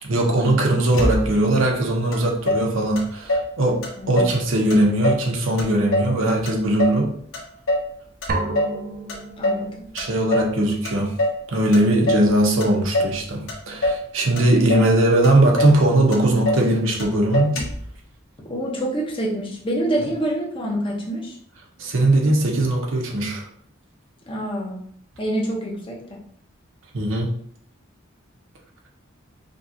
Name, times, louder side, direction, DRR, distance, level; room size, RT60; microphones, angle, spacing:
voice 1, 0.0-7.1 9.9-11.2 11.5-17.6 21.8-23.4 26.9-27.3, right 1 dB, 75° right, 0 dB, 0.9 m, -20 dB
Motor vehicle (road), 0.9-1.6 2.1-2.2 2.5-3.5 3.8-4.4 4.7-5.3 5.6-7.0 7.3-7.9 8.2-8.8 9.1-9.7 10.0-10.6 10.8-11.4 11.7-12.3 12.6-13.2 13.5-14.1 14.4-14.9 15.2-15.3 15.6-15.8 16.1-16.7 17.0-17.1 17.3-17.9, left 1 dB, 80° left, 0.9 m, -24 dB
sound 1, 8.3-10.1, right 2 dB, 45° right, 0.4 m, -30 dB
voice 2, 9.4-9.9 18.5-21.4 24.3-24.8 25.2-26.2, right 1 dB, 25° left, -2 dB, 0.8 m, -26 dB
5.2 x 2.4 x 2.8 m, 0.63 s
head